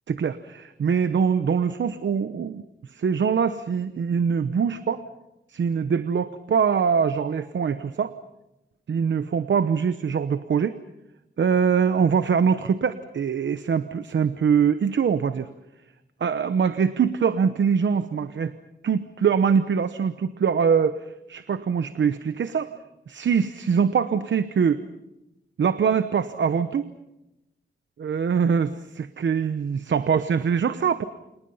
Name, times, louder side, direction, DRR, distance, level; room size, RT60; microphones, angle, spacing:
voice 1, 0.1-2.6 2.9-5.0 5.5-8.1 8.9-10.7 11.4-15.5 16.2-18.5 18.8-22.7 23.1-24.8 25.6-26.9 28.0-31.0, right 6 dB, 85° right, 11 dB, 0.9 m, -23 dB
29.5 x 27.5 x 5.6 m, 0.92 s
wide cardioid pair, 120°, 19 cm